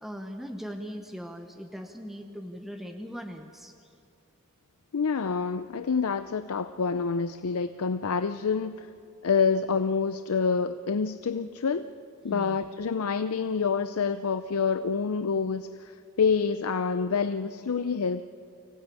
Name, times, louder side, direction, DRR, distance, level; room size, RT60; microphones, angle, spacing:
voice 1, 0.0-3.7 12.3-12.6, equal, ahead, 4 dB, 0.9 m, -39 dB
voice 2, 4.9-8.9 9.2-11.9 12.2-18.2, left 5 dB, 70° left, 11 dB, 0.5 m, -27 dB
24.5 x 16.5 x 8.3 m, 2.6 s
head